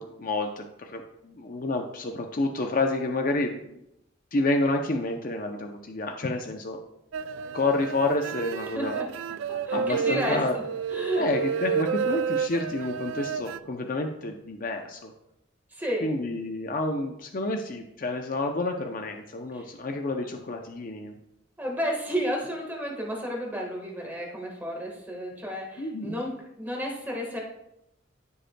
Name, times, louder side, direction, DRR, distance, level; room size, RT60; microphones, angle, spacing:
voice 1, 0.0-3.8 4.3-6.8 7.5-9.0 9.7-10.6 11.2-15.1 16.0-21.2 25.8-26.2, left 2 dB, 45° left, 4 dB, 0.6 m, -29 dB
sound 1, 7.1-13.6, right 7 dB, 75° right, 0.3 m, -30 dB
voice 2, 8.7-9.1 9.7-11.5 15.7-16.1 19.5-19.7 21.6-27.4, equal, 10° right, -1 dB, 1.5 m, -32 dB
14.5 x 5.1 x 2.2 m, 0.83 s
head